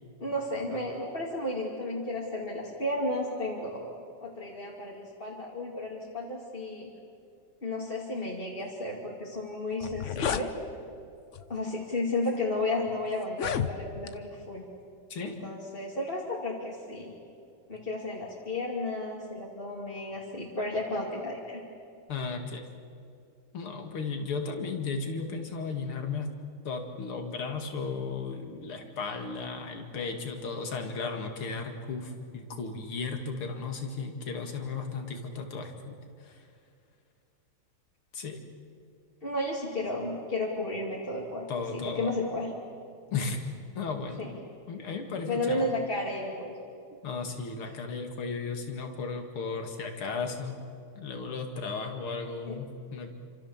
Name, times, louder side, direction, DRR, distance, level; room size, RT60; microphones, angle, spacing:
voice 1, 0.2-3.9 4.2-6.9 7.6-10.5 11.5-14.6 15.2-17.1 17.7-21.6 39.2-41.5 41.7-42.5 44.2-44.3 45.3-46.5 52.5-52.6, left 2 dB, 25° left, -4 dB, 2.6 m, -33 dB
sound 1, 9.3-9.4 9.7-10.5 11.3-11.6 12.3-12.4 13.2-14.1, left 8 dB, 55° left, 0.9 m, -32 dB
voice 2, 22.1-22.7 23.5-26.3 26.6-36.5 38.1-38.4 41.5-42.1 43.1-43.4 43.7-44.3 44.7-45.6 47.0-50.6 51.0-53.1, left 4 dB, 85° left, 4 dB, 3.1 m, -35 dB
28.5 x 26.0 x 7.3 m, 2.4 s
omnidirectional pair, 2.3 m